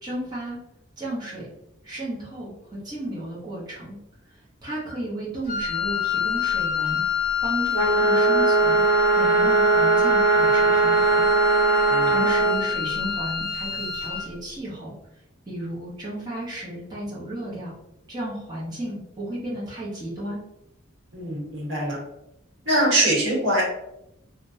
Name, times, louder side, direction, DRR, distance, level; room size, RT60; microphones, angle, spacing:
voice 1, 0.0-0.6 1.0-1.5 1.8-4.0 4.6-7.0 7.4-8.8 9.2-11.3 11.8-14.9 15.5-17.7 18.1-20.4, right 1 dB, 20° right, -8 dB, 0.9 m, -33 dB
Wind instrument woodwind instrument, 5.4-14.3, left 8 dB, 50° left, 0.7 m, -26 dB
sound 1, 7.7-12.6, right 4 dB, 50° right, 1.0 m, -20 dB
voice 2, 21.1-22.0 22.6-23.6, right 1 dB, 80° right, -2 dB, 1.2 m, -23 dB
3.4 x 2.1 x 2.6 m, 0.85 s
head